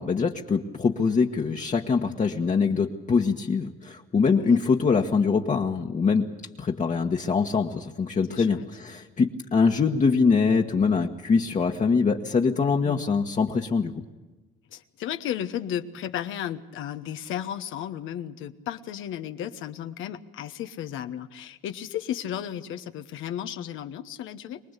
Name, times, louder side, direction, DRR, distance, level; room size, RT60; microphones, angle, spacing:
voice 1, 0.0-6.2 6.6-13.9, left 5 dB, 40° left, 1 dB, 1.4 m, -23 dB
voice 2, 4.2-4.6 8.3-8.7 12.8-13.0 14.7-24.6, left 10 dB, 85° left, 9 dB, 1.2 m, -34 dB
24.0 x 19.5 x 8.2 m, 1.2 s
cardioid pair, 90°, 20 cm